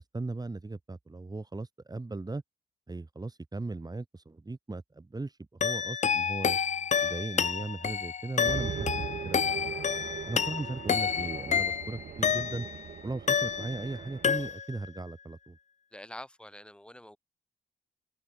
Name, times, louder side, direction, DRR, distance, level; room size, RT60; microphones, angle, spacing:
voice 1, 0.0-2.4 2.9-6.6 7.0-9.7 10.3-12.7 13.0-15.6, right 3 dB, 25° right, 4.3 m, -38 dB
sound 1, 5.6-12.9 13.3-14.0 14.2-14.9, left 7 dB, 45° left, 1.2 m, -29 dB
sound 2, 8.4-14.5, right 8 dB, 60° right, 6.1 m, -40 dB
voice 2, 15.9-17.2, left 1 dB, 5° left, 7.6 m, -46 dB
open air
hypercardioid pair, 45°, 16 cm